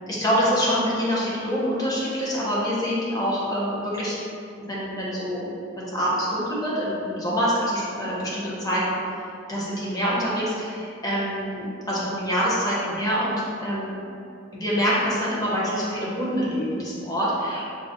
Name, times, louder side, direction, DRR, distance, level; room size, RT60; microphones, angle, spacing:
voice 1, 0.1-4.2 4.7-5.5 5.8-9.0 9.5-14.0 14.5-17.7, equal, 20° left, -7 dB, 0.8 m, -25 dB
5.3 x 2.1 x 2.6 m, 2.5 s
head